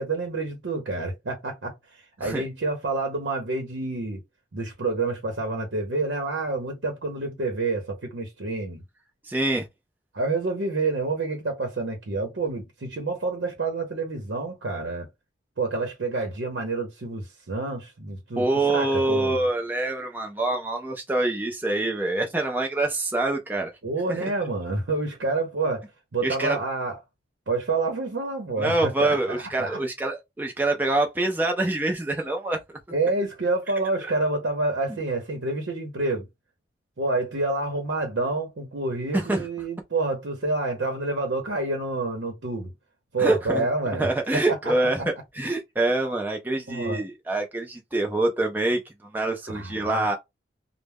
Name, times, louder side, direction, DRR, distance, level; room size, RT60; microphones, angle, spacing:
voice 1, 0.0-4.2 4.5-8.8 10.1-15.1 15.6-19.4 23.8-25.8 26.1-27.0 27.5-29.8 32.9-36.3 37.0-42.7 43.1-44.1 44.3-44.7 46.5-47.0 49.5-50.2, right 3 dB, 80° right, 0.7 m, -28 dB
voice 2, 9.2-9.7 18.4-23.7 24.1-24.3 26.2-26.6 28.6-32.6 39.1-39.5 43.2-43.6 44.0-45.0 45.3-48.8 49.1-50.2, right 2 dB, 10° right, 0.4 m, -25 dB
2.2 x 2.0 x 3.3 m
head